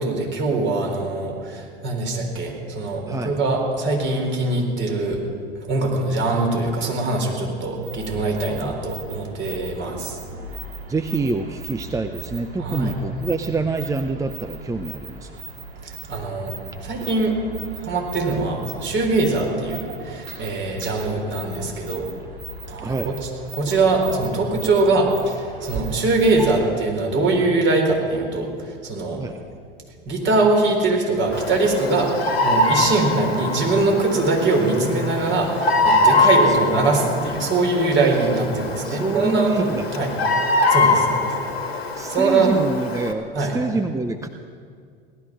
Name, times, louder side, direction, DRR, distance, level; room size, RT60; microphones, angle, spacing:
voice 1, 0.0-5.2 5.7-10.2 12.6-12.9 15.8-16.6 16.8-17.3 17.8-22.1 22.7-29.2 30.1-40.1 40.7-41.3 42.1-42.5 43.3-43.5, right 3 dB, 40° right, 1 dB, 4.5 m, -22 dB
voice 2, 3.1-3.4 10.9-15.4 22.8-23.2 26.4-26.6 29.2-29.4 36.2-36.6 38.8-40.3 41.9-44.3, right 3 dB, 10° right, 8 dB, 0.6 m, -26 dB
sound 1, 7.8-26.7, right 3 dB, 80° right, 2.5 m, -38 dB
Bird vocalization bird call bird song, 31.3-43.1, left 2 dB, 85° left, 1.8 m, -23 dB
18.0 x 12.5 x 6.3 m, 2.2 s
hypercardioid pair, 85°, 30 cm